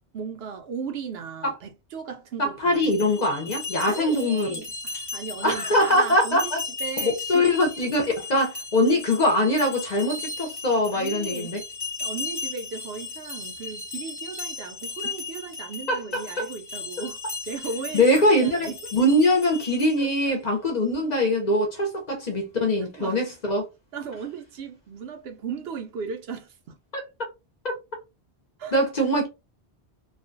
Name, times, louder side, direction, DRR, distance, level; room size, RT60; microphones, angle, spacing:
voice 1, 0.1-3.3 3.8-6.5 6.8-7.8 10.9-11.6 12.0-17.2 17.5-18.0 18.4-18.9 20.0-20.3 23.0-23.2 23.9-26.8 28.6-28.7, right 6 dB, 70° right, 0.8 m, -36 dB
voice 2, 2.4-4.6 5.4-6.6 7.0-11.6 15.9-16.5 17.9-23.7 26.9-27.0 28.7-29.3, left 1 dB, 45° left, 0.7 m, -22 dB
sound 1, 2.7-20.2, left 4 dB, 25° left, 1.0 m, -36 dB
2.4 x 2.2 x 2.5 m
omnidirectional pair, 1.1 m